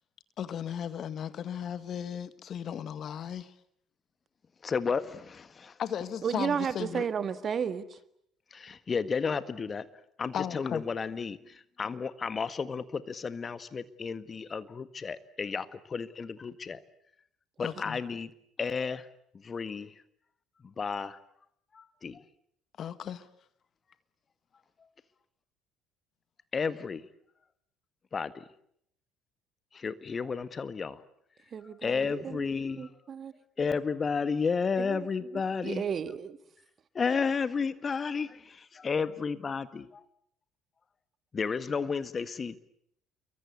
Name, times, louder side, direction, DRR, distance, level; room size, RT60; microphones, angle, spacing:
voice 1, 0.4-3.5 5.8-7.1 10.3-10.8 17.6-18.0 22.8-23.3, left 9 dB, 50° left, 1.8 m, -36 dB
voice 2, 4.6-5.8 8.5-9.9 10.2-16.8 17.6-18.3 18.6-19.1 19.3-19.9 20.6-21.2 21.7-22.2 26.5-27.0 28.1-28.4 29.7-31.0 31.8-32.9 33.6-35.8 36.9-40.0 41.3-42.6, left 5 dB, 35° left, 1.7 m, -32 dB
voice 3, 6.2-8.0 31.5-32.4 32.8-33.3 34.8-35.0 35.6-36.4, right 7 dB, 45° right, 1.7 m, -33 dB
28.5 x 23.5 x 8.5 m
hypercardioid pair, 55°, 0 cm